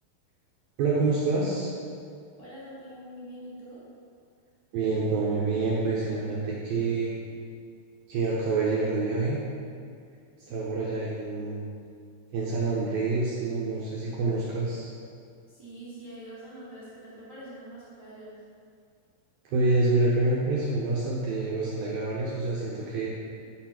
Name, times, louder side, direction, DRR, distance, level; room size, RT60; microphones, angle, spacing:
voice 1, 0.8-1.7 4.7-7.1 8.1-9.4 10.5-11.6 12.3-14.9 19.5-23.1, right 3 dB, 75° right, -6 dB, 2.3 m, -27 dB
voice 2, 2.4-3.8 10.5-10.8 15.5-18.4, right 1 dB, 30° right, -10 dB, 1.4 m, -44 dB
10.5 x 4.4 x 5.9 m, 2.3 s
omnidirectional pair, 5.5 m